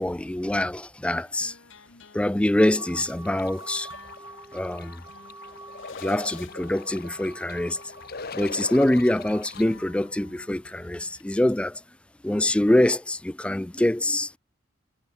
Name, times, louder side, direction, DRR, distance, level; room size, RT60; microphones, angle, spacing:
voice 1, 0.0-1.5 2.1-3.9 4.5-5.0 6.0-7.8 8.3-11.8 12.2-14.4, left 1 dB, 5° left, 0.3 m, -24 dB
sound 1, 1.1-11.2, left 5 dB, 70° left, 1.5 m, -53 dB
sound 2, 2.6-9.4, right 2 dB, 15° right, 4.8 m, -46 dB
sound 3, 2.7-9.6, left 4 dB, 50° left, 1.2 m, -42 dB
head